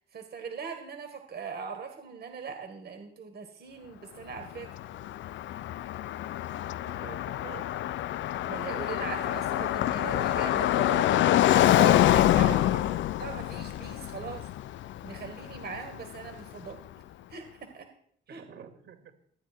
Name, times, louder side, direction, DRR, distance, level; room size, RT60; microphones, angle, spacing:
voice 1, 0.1-4.7 8.5-11.1 11.5-12.7 13.2-14.5 15.0-16.8 17.3-17.9 18.3-18.4, right 6 dB, 55° right, 5 dB, 1.9 m, -40 dB
Car passing by, 4.4-16.4, left 13 dB, 75° left, 0.5 m, -26 dB
voice 2, 6.8-7.7 12.5-13.1 18.3-19.1, right 7 dB, 75° right, 6 dB, 2.3 m, -47 dB
13.0 x 9.0 x 4.5 m, 0.65 s
cardioid pair, 90°, 20 cm